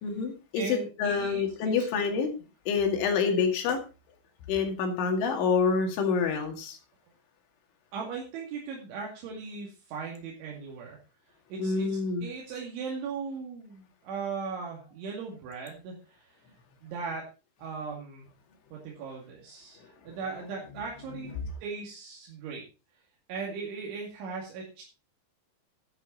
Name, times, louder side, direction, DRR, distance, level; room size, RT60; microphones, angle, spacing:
voice 1, 0.0-2.3 2.7-3.8 4.5-6.8 11.6-12.3, left 5 dB, 80° left, 4 dB, 4.6 m, -27 dB
voice 2, 0.6-1.7 7.9-11.0 11.5-11.9 12.2-16.3 16.8-17.3 17.6-18.3 18.7-21.3 21.6-22.6 23.3-24.8, right 5 dB, 80° right, -2 dB, 4.8 m, -38 dB
12.0 x 10.0 x 4.0 m, 0.31 s
omnidirectional pair, 5.4 m